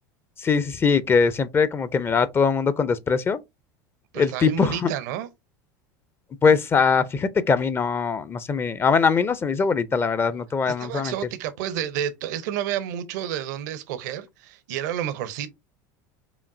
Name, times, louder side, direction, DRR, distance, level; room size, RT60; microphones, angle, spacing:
voice 1, 0.4-3.4 4.2-4.9 6.4-11.1, left 5 dB, 25° left, 0.4 m, -22 dB
voice 2, 4.1-5.3 10.7-15.5, right 10 dB, 75° right, 0.7 m, -30 dB
5.0 x 2.6 x 2.5 m
supercardioid pair, 105°, 10 cm